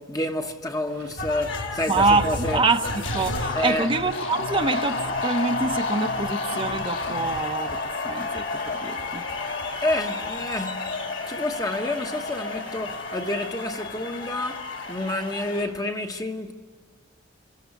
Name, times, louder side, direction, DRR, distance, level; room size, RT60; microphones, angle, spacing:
voice 1, 0.0-2.6 3.5-3.9 9.8-16.5, left 1 dB, 20° left, 1.2 m, -29 dB
sound 1, 0.8-15.7, right 3 dB, 85° right, 2.6 m, -49 dB
sound 2, 1.2-15.6, left 3 dB, 65° left, 2.6 m, -31 dB
voice 2, 1.9-7.8 8.0-9.3, right 3 dB, 25° right, 0.9 m, -25 dB
sound 3, 3.0-7.4, left 4 dB, 80° left, 1.3 m, -38 dB
27.0 x 24.5 x 8.4 m
head